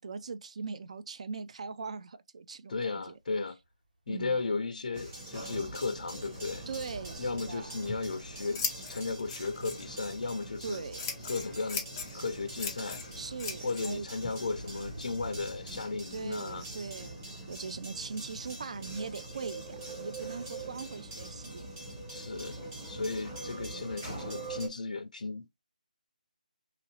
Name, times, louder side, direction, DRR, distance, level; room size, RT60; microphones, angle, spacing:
voice 1, 0.0-3.2 4.1-4.4 6.7-7.9 10.6-11.1 13.2-14.1 16.1-21.7 23.0-23.2, right 4 dB, 50° right, 0.4 m, -40 dB
voice 2, 2.7-3.6 4.1-6.7 7.2-10.8 11.2-11.9 12.1-13.0 13.6-16.7 22.1-22.6 22.9-25.5, left 4 dB, 70° left, 0.4 m, -35 dB
sound 1, 2.9-3.0 3.6-3.7 5.0-5.1 5.4-19.4, right 1 dB, 90° right, 1.5 m, -52 dB
sound 2, 4.9-24.7, right 2 dB, 10° right, 0.8 m, -44 dB
Scissors, 7.7-15.8, left 5 dB, 15° left, 0.5 m, -42 dB
3.0 x 2.5 x 2.7 m
hypercardioid pair, 170°, 5 cm